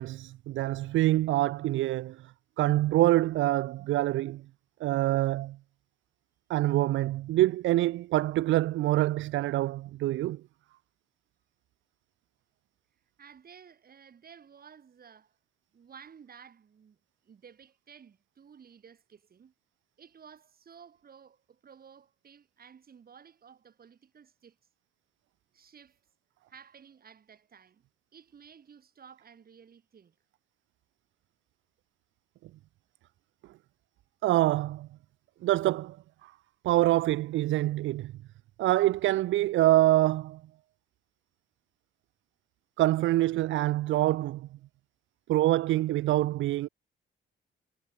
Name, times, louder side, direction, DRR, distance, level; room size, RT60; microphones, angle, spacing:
voice 1, 0.0-2.2 2.6-4.4 4.8-5.6 6.5-10.4 34.2-34.9 35.4-36.0 36.2-36.3 36.6-38.1 38.6-40.4 42.8-44.5 45.3-46.7, right 16 dB, 75° right, 0.5 m, -25 dB
voice 2, 13.2-15.4 15.7-17.0 17.2-19.5 20.0-24.6 25.5-26.0 26.5-27.8 28.1-30.2, right 7 dB, 50° right, 8.0 m, -54 dB
cardioid pair, 90°, 20 cm